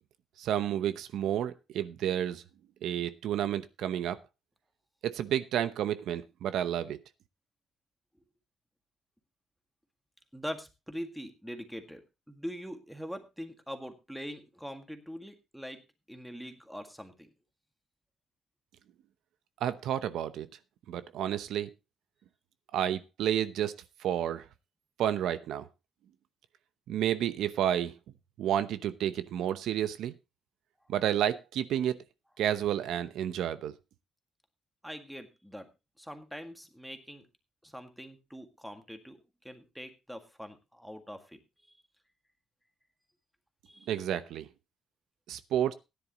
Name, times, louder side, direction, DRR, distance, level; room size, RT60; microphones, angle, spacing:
voice 1, 0.4-2.4 2.8-4.2 5.0-7.0 19.6-20.5 20.9-21.7 22.7-23.7 24.0-24.4 25.0-25.7 26.9-27.9 28.4-30.1 30.9-32.0 32.4-33.7 43.9-44.5 45.3-45.7, right 10 dB, 80° right, 13 dB, 0.8 m, -30 dB
voice 2, 10.3-12.0 12.3-17.3 34.8-35.7 36.0-37.3 37.6-41.4 43.7-43.9, equal, ahead, 6 dB, 1.8 m, -43 dB
16.5 x 10.5 x 3.0 m, 0.26 s
cardioid pair, 140°, 0 cm